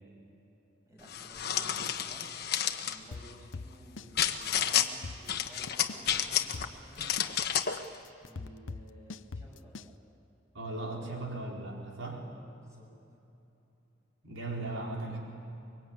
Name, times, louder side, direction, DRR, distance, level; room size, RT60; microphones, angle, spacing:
voice 1, 0.8-2.3 2.8-7.3 8.2-10.0 12.2-12.9, equal, 15° right, -2 dB, 7.3 m, -54 dB
sound 1, 1.1-3.0 4.2-4.9 5.3-6.7 7.0-7.8, left 9 dB, 55° left, 1.2 m, -30 dB
sound 2, 3.1-4.1 4.4-4.5 4.8-6.2 6.5-9.9, left 3 dB, 85° left, 0.7 m, -42 dB
voice 2, 10.5-12.2 14.2-15.2, right 2 dB, 90° right, -1 dB, 4.5 m, -37 dB
24.5 x 23.5 x 9.0 m, 2.9 s
head